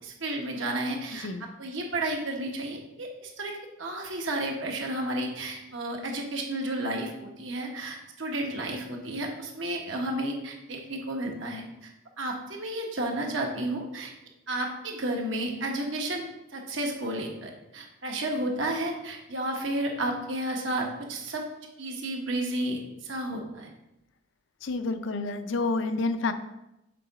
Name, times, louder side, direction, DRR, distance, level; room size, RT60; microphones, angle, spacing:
voice 1, 0.0-1.3 1.6-11.9 12.2-14.1 14.5-16.2 16.5-21.4 21.8-23.7, right 1 dB, 80° right, 1 dB, 1.3 m, -32 dB
voice 2, 24.6-26.3, left 3 dB, 70° left, 9 dB, 0.5 m, -29 dB
6.9 x 4.0 x 4.8 m, 0.91 s
head